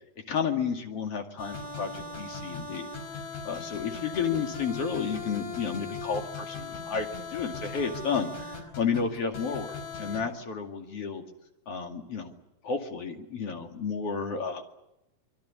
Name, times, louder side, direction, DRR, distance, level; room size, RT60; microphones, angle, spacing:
voice 1, 0.3-2.9 3.4-9.7 10.0-11.2 11.7-12.3 12.6-14.6, left 6 dB, 55° left, 4 dB, 3.3 m, -31 dB
sound 1, 1.4-10.2, left 4 dB, 90° left, 6.5 m, -39 dB
26.0 x 22.5 x 8.7 m, 0.89 s
omnidirectional pair, 3.4 m